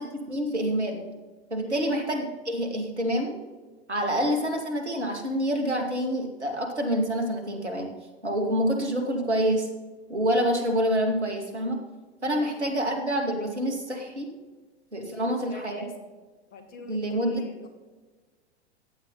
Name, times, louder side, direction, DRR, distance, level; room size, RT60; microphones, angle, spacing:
voice 1, 0.1-1.0 1.5-3.3 3.9-7.9 8.2-9.7 10.1-11.8 12.2-14.3 14.9-15.8 16.9-17.4, equal, 85° right, 3 dB, 2.4 m, -27 dB
voice 2, 1.6-2.0 12.3-12.7 15.1-16.1 16.5-17.7, left 4 dB, 30° left, 7 dB, 1.9 m, -45 dB
15.0 x 9.9 x 4.0 m, 1.3 s
figure-of-eight pair, 95°, 33 cm